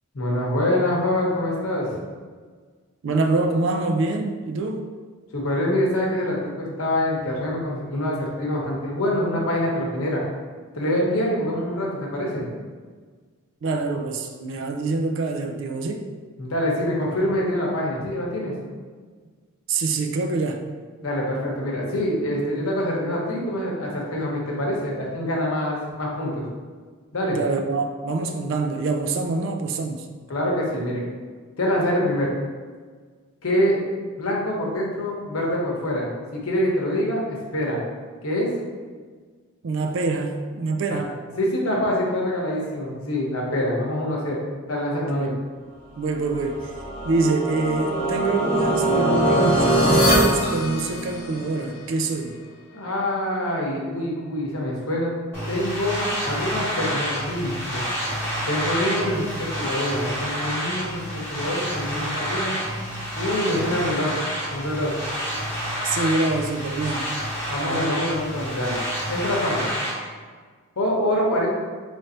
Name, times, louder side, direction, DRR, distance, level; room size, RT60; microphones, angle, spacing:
voice 1, 0.1-2.0 5.3-10.2 10.7-12.4 16.4-18.5 21.0-26.4 27.1-27.4 30.3-31.0 31.6-32.3 33.4-33.8 34.2-37.8 38.2-38.5 40.9-41.1 41.4-44.4 44.7-45.3 52.7-55.1 55.5-57.8 58.4-62.5 63.2-64.1 64.5-64.9 67.5-68.8 69.1-69.7 70.8-71.5, left 1 dB, 75° left, -3 dB, 0.9 m, -25 dB
voice 2, 3.0-4.9 13.6-16.1 19.7-20.6 27.3-30.1 39.6-41.1 45.1-45.4 46.0-46.7 47.0-52.4 65.8-67.1 67.7-68.0, right 3 dB, 60° right, 5 dB, 0.4 m, -25 dB
sound 1, 46.3-51.5, right 1 dB, 30° left, 0.9 m, -22 dB
sound 2, 55.3-69.9, equal, 10° left, 1.3 m, -29 dB
3.2 x 2.6 x 4.2 m, 1.5 s
head